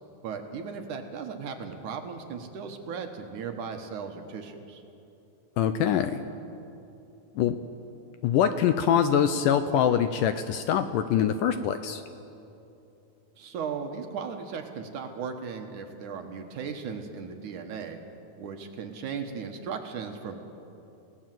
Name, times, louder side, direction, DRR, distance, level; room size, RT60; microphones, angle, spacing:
voice 1, 0.2-4.8 13.4-18.0 18.4-20.4, right 6 dB, 65° right, 4 dB, 2.6 m, -37 dB
voice 2, 5.6-6.2 7.4-7.6 8.2-12.0, left 9 dB, 75° left, 9 dB, 2.1 m, -24 dB
29.0 x 17.5 x 7.7 m, 2.8 s
omnidirectional pair, 4.3 m